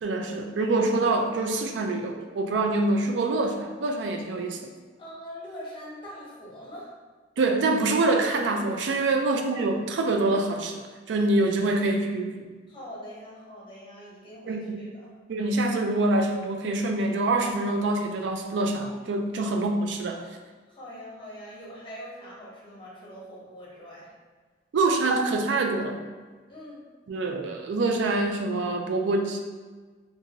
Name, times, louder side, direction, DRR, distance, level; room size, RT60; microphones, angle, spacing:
voice 1, 0.0-4.6 7.4-10.7 11.1-12.5 14.5-14.8 15.3-20.2 24.7-26.0 27.1-29.4, right 2 dB, 70° right, 4 dB, 0.3 m, -25 dB
voice 2, 5.0-6.9 9.1-9.2 11.7-11.9 12.7-15.1 19.4-19.7 20.7-24.1 26.5-26.8, equal, 25° left, -6 dB, 0.8 m, -43 dB
2.6 x 2.5 x 2.9 m, 1.4 s
head